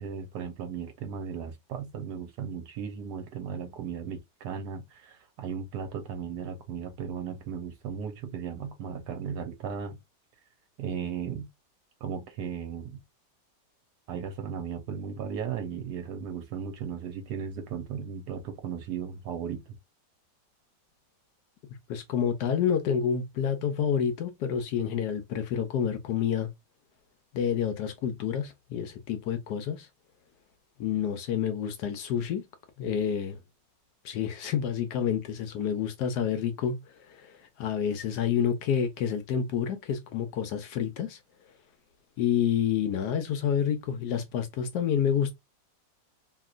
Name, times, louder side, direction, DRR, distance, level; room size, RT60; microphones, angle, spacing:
voice 1, 0.0-10.0 10.8-11.5 12.0-13.0 14.1-19.8, right 7 dB, 75° right, 1.1 m, -36 dB
voice 2, 21.9-26.5 27.3-29.9 30.8-32.4 32.8-33.4 34.0-36.8 37.1-41.2 42.2-45.3, left 8 dB, 70° left, 1.1 m, -28 dB
2.9 x 2.8 x 2.4 m
omnidirectional pair, 2.0 m